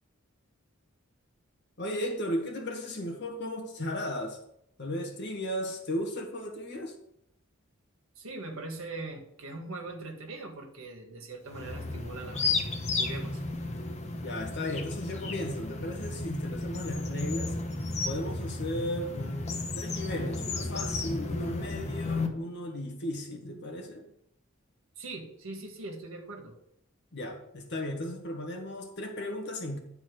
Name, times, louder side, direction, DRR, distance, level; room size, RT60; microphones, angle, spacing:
voice 1, 1.8-4.4 4.8-7.0 14.2-17.5 18.0-24.1 27.1-29.8, left 1 dB, 55° left, 2 dB, 1.7 m, -35 dB
voice 2, 8.1-12.7 13.0-13.4 25.0-26.5, right 2 dB, 70° right, 3 dB, 1.7 m, -41 dB
sound 1, 11.5-22.3, left 3 dB, 35° left, 1.0 m, -33 dB
10.0 x 4.5 x 6.2 m, 0.76 s
head